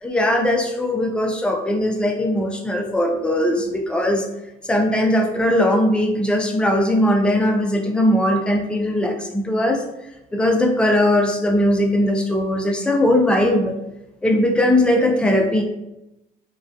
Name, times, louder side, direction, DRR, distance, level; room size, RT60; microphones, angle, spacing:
voice 1, 0.0-4.3 4.6-9.8 10.3-13.8 14.2-15.6, left 1 dB, 5° left, 2 dB, 0.3 m, -19 dB
2.2 x 2.2 x 2.5 m, 0.92 s
cardioid pair, 110°, 17 cm